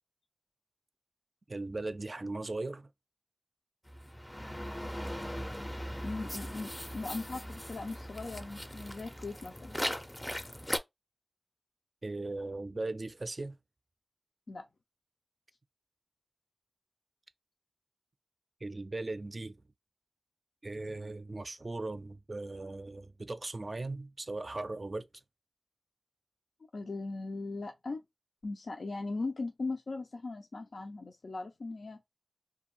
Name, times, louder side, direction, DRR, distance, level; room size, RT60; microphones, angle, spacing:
voice 1, 1.5-2.9 12.0-13.6 18.6-19.6 20.6-25.1, right 2 dB, 55° right, 0.3 m, -38 dB
sound 1, 3.9-10.8, equal, 15° left, 0.4 m, -39 dB
voice 2, 6.0-9.8 14.5-14.7 26.7-28.0 28.4-32.0, left 3 dB, 90° left, 0.4 m, -39 dB
2.5 x 2.2 x 2.9 m
cardioid pair, 45°, 0 cm